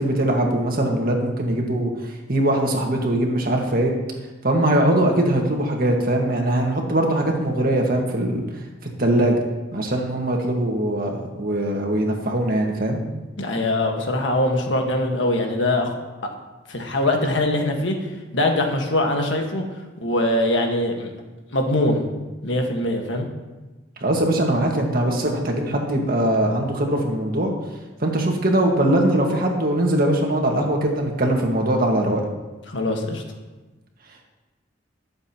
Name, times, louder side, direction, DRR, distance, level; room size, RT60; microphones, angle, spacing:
voice 1, 0.0-3.9 4.4-8.4 9.0-9.4 9.7-13.0 24.0-27.5 28.0-32.2, right 1 dB, 50° right, 1 dB, 1.8 m, -21 dB
voice 2, 13.4-15.9 16.7-18.0 18.3-19.6 20.0-21.1 21.5-22.1 22.4-23.3 32.7-33.2, left 1 dB, 70° left, 2 dB, 1.7 m, -22 dB
21.5 x 7.5 x 3.0 m, 1.2 s
head